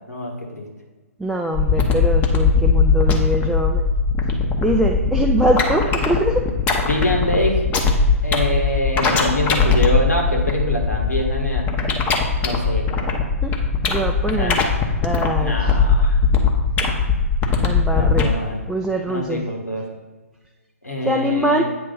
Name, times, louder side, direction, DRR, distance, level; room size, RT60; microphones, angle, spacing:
voice 1, 0.1-0.7 6.8-7.6 8.2-11.7 12.4-12.9 14.2-14.6 15.4-16.2 17.9-18.6 19.1-19.9 20.8-21.6, left 1 dB, 90° left, 1 dB, 1.6 m, -24 dB
voice 2, 1.2-3.8 4.6-6.5 13.4-13.5 13.9-14.6 15.0-15.7 17.6-18.3 18.7-19.5 21.0-21.6, equal, ahead, 0 dB, 0.4 m, -23 dB
sound 1, 1.5-18.3, left 5 dB, 20° left, 0.8 m, -19 dB
8.6 x 3.2 x 5.4 m, 1.3 s
figure-of-eight pair, 130°, 8 cm